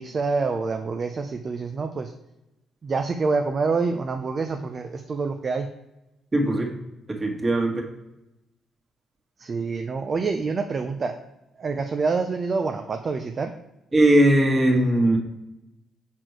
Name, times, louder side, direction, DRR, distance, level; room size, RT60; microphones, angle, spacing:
voice 1, 0.0-2.1 2.8-5.7 9.4-11.2 11.6-13.5, right 4 dB, 40° right, 5 dB, 0.5 m, -26 dB
voice 2, 6.3-6.7 7.1-7.8 13.9-15.2, right 1 dB, 25° right, 1 dB, 1.7 m, -19 dB
6.2 x 4.3 x 4.6 m, 0.94 s
cardioid pair, 90°, 0 cm